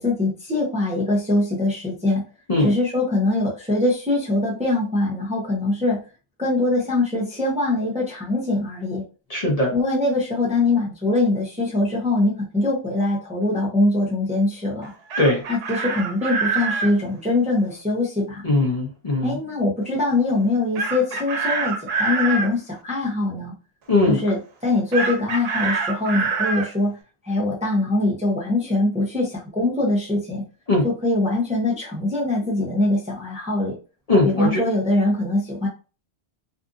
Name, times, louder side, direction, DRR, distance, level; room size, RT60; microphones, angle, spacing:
voice 1, 0.0-2.2 2.6-6.0 6.4-9.0 9.7-14.9 15.5-18.4 19.2-23.5 24.1-27.0 27.2-30.4 30.8-33.8 34.2-35.7, left 2 dB, 10° right, -3 dB, 0.6 m, -22 dB
voice 2, 9.3-9.7 15.2-15.4 18.4-19.4 23.9-24.2 30.7-30.8 34.1-34.6, left 2 dB, 40° left, -2 dB, 0.8 m, -19 dB
Chicken rooster, 14.8-16.9 20.8-22.5 24.9-26.7, right 4 dB, 75° right, 0.8 m, -25 dB
2.6 x 2.4 x 2.5 m, 0.34 s
omnidirectional pair, 1.1 m